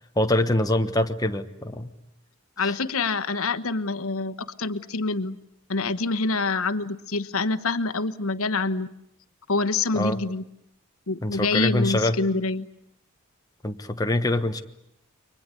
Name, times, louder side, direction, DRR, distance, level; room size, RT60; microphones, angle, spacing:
voice 1, 0.2-1.9 2.6-2.7 9.9-10.2 11.2-12.2 13.6-14.6, left 1 dB, 15° left, 6 dB, 1.2 m, -24 dB
voice 2, 2.6-5.4 5.7-8.9 9.5-10.4 11.1-12.7, left 3 dB, 85° left, 11 dB, 1.2 m, -26 dB
29.5 x 24.0 x 8.4 m, 0.78 s
head